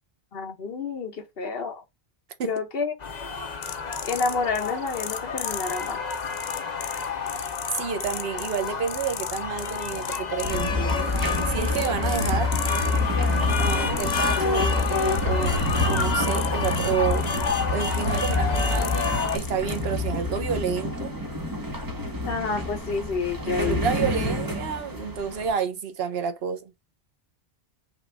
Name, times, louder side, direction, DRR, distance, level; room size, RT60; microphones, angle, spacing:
voice 1, 0.3-1.8 2.4-2.9 4.0-6.0 22.2-23.9, left 4 dB, 65° left, 1.1 m, -29 dB
sound 1, 3.0-19.4, left 4 dB, 45° left, 0.9 m, -30 dB
sound 2, 3.6-19.8, left 9 dB, 90° left, 0.9 m, -39 dB
voice 2, 7.7-11.2 11.5-12.5 13.6-17.3 17.7-21.2 23.4-26.7, right 7 dB, 70° right, 1.0 m, -29 dB
sound 3, 10.4-25.5, left 2 dB, 20° right, 1.2 m, -27 dB
5.7 x 2.5 x 3.4 m
omnidirectional pair, 1.1 m